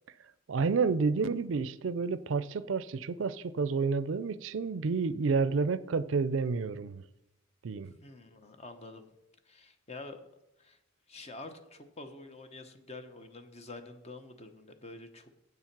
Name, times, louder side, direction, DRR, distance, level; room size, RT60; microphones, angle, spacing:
voice 1, 0.5-7.0 7.6-7.9, right 4 dB, 75° right, 0.5 m, -30 dB
voice 2, 7.8-9.1 9.5-10.2 10.6-10.8 11.1-15.3, left 2 dB, 35° left, 0.9 m, -47 dB
8.2 x 7.2 x 6.0 m
head